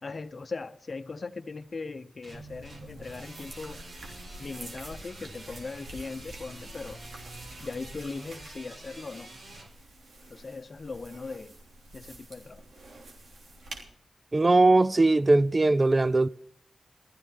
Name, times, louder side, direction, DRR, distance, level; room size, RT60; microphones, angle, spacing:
voice 1, 0.0-3.8 4.4-7.0 7.6-9.3 10.3-11.5 11.9-12.6, left 4 dB, 50° left, 0.8 m, -39 dB
sound 1, 2.2-9.7, right 2 dB, 65° right, 4.4 m, -48 dB
sound 2, 2.3-13.8, right 1 dB, 85° right, 3.3 m, -47 dB
voice 2, 14.3-16.3, right 2 dB, 30° right, 0.4 m, -20 dB
16.5 x 14.0 x 3.7 m
wide cardioid pair, 85°, 0 cm